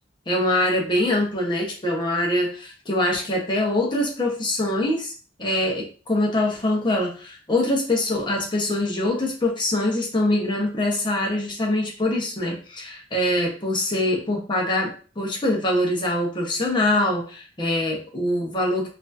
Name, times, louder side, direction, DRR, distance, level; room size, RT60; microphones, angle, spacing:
voice 1, 0.3-5.1 5.4-18.9, left 1 dB, 25° left, -1 dB, 1.0 m, -24 dB
4.5 x 2.7 x 2.6 m, 0.37 s
head